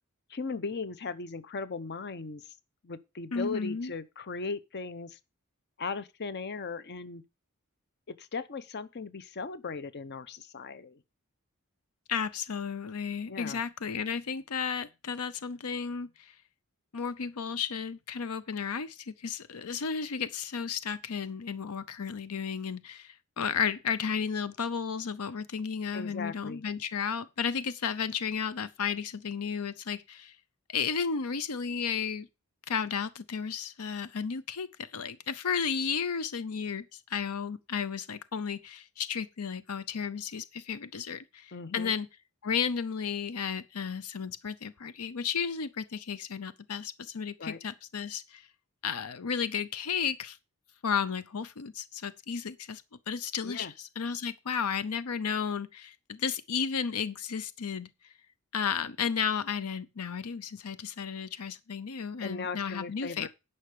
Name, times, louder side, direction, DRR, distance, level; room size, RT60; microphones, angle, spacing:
voice 1, 0.3-2.5 2.8-5.2 5.8-7.2 8.1-11.0 13.3-13.6 25.9-26.6 41.5-41.9 47.4-47.6 53.4-53.7 62.2-63.3, left 4 dB, 50° left, 0.8 m, -38 dB
voice 2, 3.3-3.9 12.1-16.3 16.9-30.4 30.7-32.3 32.7-42.1 42.4-48.5 48.8-50.4 50.8-57.9 58.5-63.3, left 6 dB, 85° left, 0.7 m, -33 dB
9.9 x 5.7 x 6.7 m
head